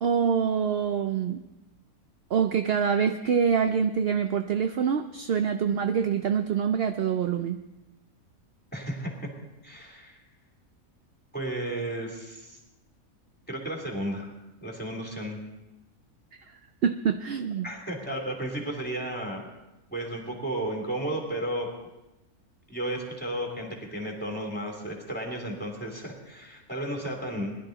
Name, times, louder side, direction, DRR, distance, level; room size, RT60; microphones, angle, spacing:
voice 1, 0.0-1.4 2.3-7.6 16.8-17.7, right 7 dB, 60° right, 7 dB, 0.6 m, -25 dB
voice 2, 8.7-9.3 9.6-10.2 11.3-12.6 13.5-14.3 14.6-15.4 17.6-19.4 19.9-21.7 22.7-27.6, right 1 dB, 5° left, 0 dB, 3.1 m, -33 dB
21.0 x 12.0 x 3.9 m, 0.98 s
omnidirectional pair, 1.6 m